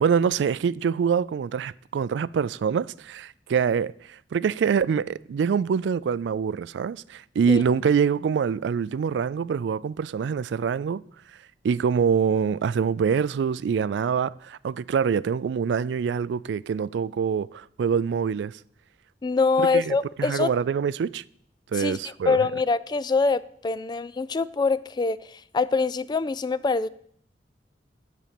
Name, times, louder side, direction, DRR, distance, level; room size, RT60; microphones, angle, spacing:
voice 1, 0.0-11.0 11.6-18.6 19.6-21.2 21.7-22.4, right 6 dB, 70° right, 0.3 m, -25 dB
voice 2, 19.2-20.5 21.7-26.9, left 4 dB, 25° left, 0.3 m, -24 dB
12.0 x 4.2 x 7.6 m
head